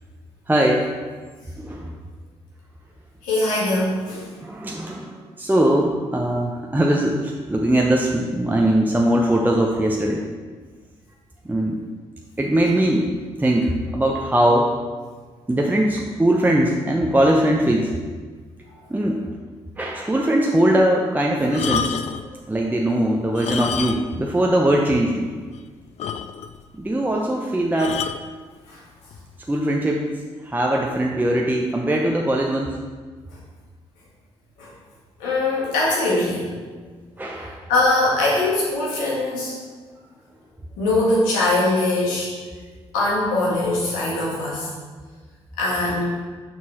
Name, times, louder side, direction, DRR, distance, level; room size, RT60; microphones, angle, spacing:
voice 1, 0.5-0.9 1.6-1.9 4.4-10.2 11.4-11.8 12.4-13.1 13.4-14.7 15.5-18.0 18.9-19.4 19.8-21.9 22.3-25.3 26.7-28.0 29.5-30.1 30.4-32.7 37.2-37.6, right 1 dB, 15° right, 0 dB, 0.7 m, -21 dB
voice 2, 3.2-4.3 28.6-28.8 33.3-33.4 34.6-34.7 35.2-36.5 37.4-39.5 40.8-42.3 42.9-44.7 45.6-46.0, left 2 dB, 80° left, -5 dB, 1.7 m, -22 dB
sound 1, 21.5-22.3 23.3-24.3 24.5-24.6 25.2-25.3 25.5-25.6 26.0-26.6 27.8-28.3 29.1-29.3, left 7 dB, 55° left, 0.4 m, -28 dB
5.9 x 4.6 x 4.3 m, 1.5 s
hypercardioid pair, 40°, 13 cm